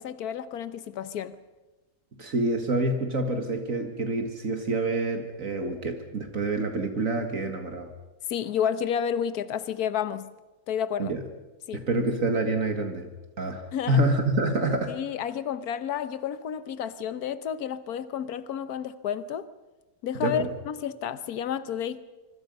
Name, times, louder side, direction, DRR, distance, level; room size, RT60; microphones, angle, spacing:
voice 1, 0.0-1.4 8.3-10.3 10.7-11.1 11.7-11.8 13.7-14.0 14.9-19.5 20.0-22.0, left 8 dB, 85° left, 1.5 m, -31 dB
voice 2, 2.2-7.9 11.0-11.2 11.7-13.1 13.4-14.9 20.2-20.5, right 2 dB, 60° right, 2.2 m, -27 dB
25.5 x 25.0 x 5.4 m
omnidirectional pair, 1.6 m